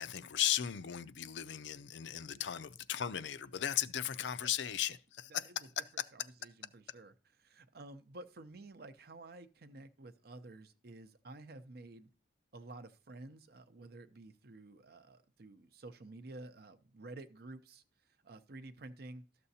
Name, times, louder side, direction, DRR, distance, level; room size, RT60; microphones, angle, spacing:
voice 1, 0.0-5.5 5.8-6.0, left 10 dB, 80° left, 0.5 m, -36 dB
voice 2, 5.3-5.7 5.9-7.1 7.4-12.1 12.5-17.8 18.2-19.2, right 2 dB, 60° right, 0.6 m, -51 dB
12.5 x 6.8 x 2.8 m
head